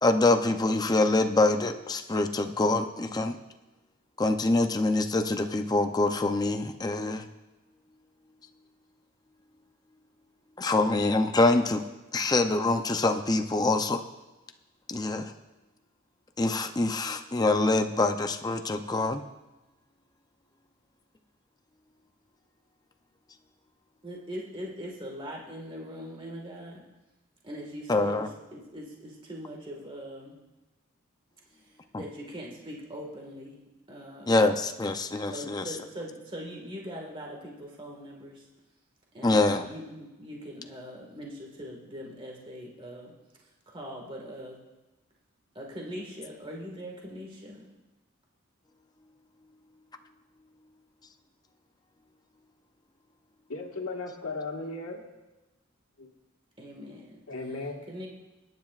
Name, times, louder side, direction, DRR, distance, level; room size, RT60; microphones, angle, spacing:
voice 1, 0.0-3.4 4.2-7.2 10.6-11.8 12.1-14.0 14.9-15.3 16.4-19.2 27.9-28.3 31.9-32.0 34.3-35.8 39.2-39.6, left 2 dB, 20° left, 6 dB, 0.5 m, -25 dB
voice 2, 24.0-26.9 27.4-28.3 28.5-30.4 31.5-31.7 32.0-33.5 33.9-34.5 35.3-38.4 39.1-43.1 43.7-44.6 45.5-47.7 56.6-57.2 57.9-58.1, equal, 25° right, -1 dB, 1.7 m, -41 dB
voice 3, 53.5-55.0 56.0-56.1 57.3-57.9, left 3 dB, 90° left, 1 dB, 1.6 m, -36 dB
22.5 x 9.4 x 2.4 m, 1.1 s
head